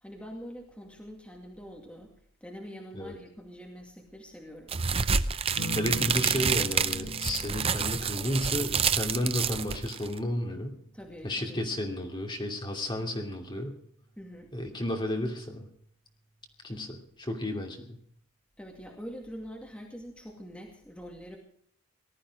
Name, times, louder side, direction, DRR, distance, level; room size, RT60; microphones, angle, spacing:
voice 1, 0.0-2.1 2.4-4.8 10.9-11.6 14.2-14.5 18.6-21.4, equal, 5° left, 0 dB, 2.3 m, -44 dB
sound 1, 4.7-10.2, right 6 dB, 30° right, 0.6 m, -28 dB
sound 2, 5.6-14.6 16.1-16.6, left 1 dB, 55° left, 2.4 m, -44 dB
voice 2, 5.7-10.7 11.2-13.7 14.5-15.7 16.6-18.0, left 1 dB, 20° left, 2 dB, 2.7 m, -32 dB
19.0 x 13.0 x 4.8 m, 0.65 s
head